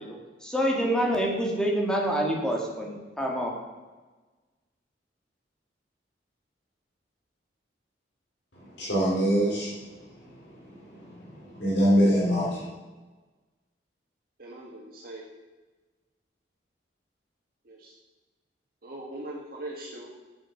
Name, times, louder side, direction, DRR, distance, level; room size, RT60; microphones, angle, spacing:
voice 1, 0.0-3.6, equal, 5° left, -1 dB, 1.7 m, -27 dB
voice 2, 8.8-9.7 10.3-10.4 10.7-12.7, equal, 75° left, -6 dB, 3.1 m, -24 dB
voice 3, 14.4-15.3 17.6-17.9 18.8-20.1, right 1 dB, 55° right, -3 dB, 1.6 m, -41 dB
8.5 x 7.4 x 5.7 m, 1.3 s
head